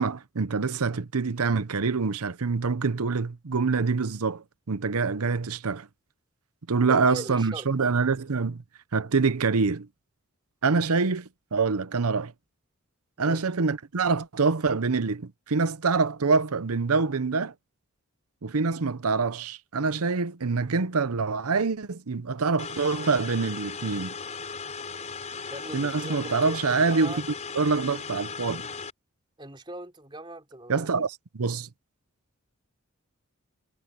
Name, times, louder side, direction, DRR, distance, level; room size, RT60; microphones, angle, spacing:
voice 1, 0.0-5.9 6.7-8.6 8.9-9.9 10.6-12.3 13.2-17.5 18.4-24.1 25.7-27.1 27.5-28.7 30.7-31.7, right 4 dB, 80° right, 0.8 m, -25 dB
voice 2, 6.8-7.7 13.2-13.4 25.5-27.2 29.4-31.0, right 1 dB, 20° right, 4.1 m, -40 dB
sound 1, 22.6-28.9, left 5 dB, 30° left, 4.9 m, -37 dB
head